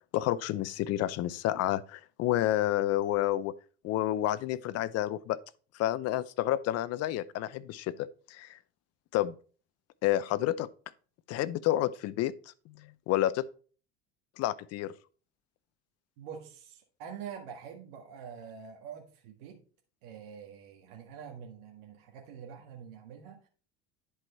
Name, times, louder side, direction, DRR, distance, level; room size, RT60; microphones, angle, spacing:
voice 1, 0.1-3.5 3.8-5.4 5.8-8.6 9.1-9.3 10.0-10.7 11.3-12.3 12.7-13.4 14.4-14.9, left 14 dB, 55° left, 0.7 m, -30 dB
voice 2, 16.2-19.6 20.0-23.5, right 7 dB, 75° right, 1.6 m, -46 dB
10.5 x 4.9 x 4.3 m
hypercardioid pair, 85°, 31 cm